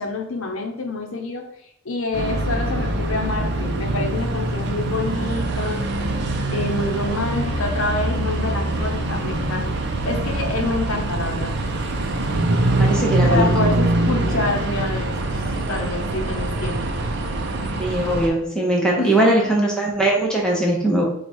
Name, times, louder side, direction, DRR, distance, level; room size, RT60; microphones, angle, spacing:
voice 1, 0.0-1.5 1.8-5.9 6.5-11.5 13.3-15.4 15.7-16.9 19.0-19.6, left 2 dB, 65° left, 3 dB, 0.8 m, -27 dB
sound 1, 2.1-18.3, right 2 dB, 50° right, 0.6 m, -23 dB
voice 2, 12.7-13.7 17.8-21.0, right 1 dB, 5° left, -2 dB, 0.8 m, -20 dB
4.6 x 2.4 x 4.3 m, 0.75 s
head